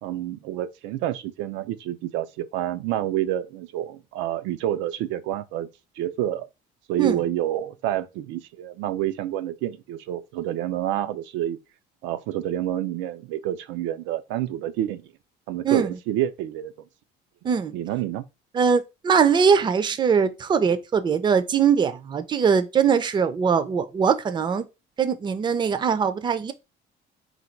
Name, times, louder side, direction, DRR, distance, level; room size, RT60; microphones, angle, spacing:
voice 1, 0.0-5.7 6.0-6.5 6.9-11.6 12.0-15.0 15.5-16.7 17.7-18.2, right 12 dB, 85° right, 0.5 m, -28 dB
voice 2, 18.5-24.7 25.0-26.5, right 6 dB, 25° right, 0.4 m, -21 dB
4.0 x 2.3 x 4.4 m
cardioid pair, 125°, 19 cm